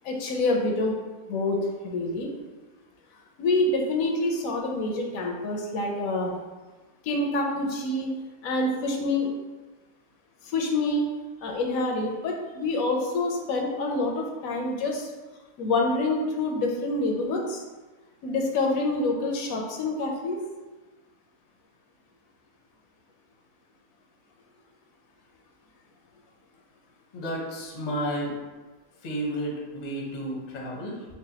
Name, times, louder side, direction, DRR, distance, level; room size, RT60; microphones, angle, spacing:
voice 1, 0.0-1.0 1.3-2.3 3.4-6.3 7.0-8.1 8.4-9.3 10.4-11.1 11.4-15.1 15.6-17.6 18.2-20.4, left 2 dB, 80° left, 1 dB, 1.0 m, -27 dB
voice 2, 27.1-28.3 29.0-31.0, equal, 45° left, -2 dB, 0.6 m, -32 dB
4.7 x 2.2 x 2.8 m, 1.2 s
omnidirectional pair, 1.5 m